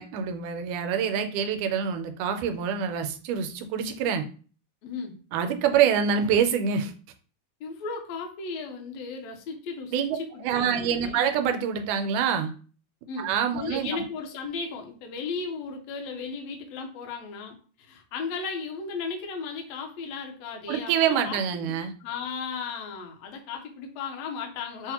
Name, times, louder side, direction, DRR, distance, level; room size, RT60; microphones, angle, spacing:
voice 1, 0.0-4.2 5.3-6.9 9.9-10.2 10.4-12.5 13.2-13.9 20.7-21.9, right 7 dB, 80° right, 6 dB, 2.0 m, -26 dB
voice 2, 4.8-5.2 7.6-11.3 13.1-13.3 13.6-21.7 22.0-24.9, left 5 dB, 75° left, 3 dB, 1.6 m, -35 dB
6.3 x 2.1 x 2.8 m, 0.39 s
omnidirectional pair, 3.6 m